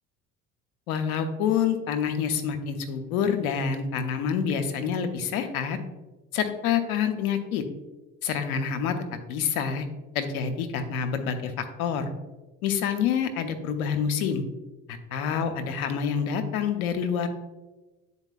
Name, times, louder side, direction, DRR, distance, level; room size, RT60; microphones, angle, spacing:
voice 1, 0.9-5.8 6.3-7.6 8.2-9.0 9.3-9.9 10.1-12.1 12.6-14.4 14.9-17.3, left 7 dB, 75° left, 7 dB, 0.8 m, -27 dB
9.6 x 4.1 x 2.4 m, 1.2 s
hypercardioid pair, 65°, 43 cm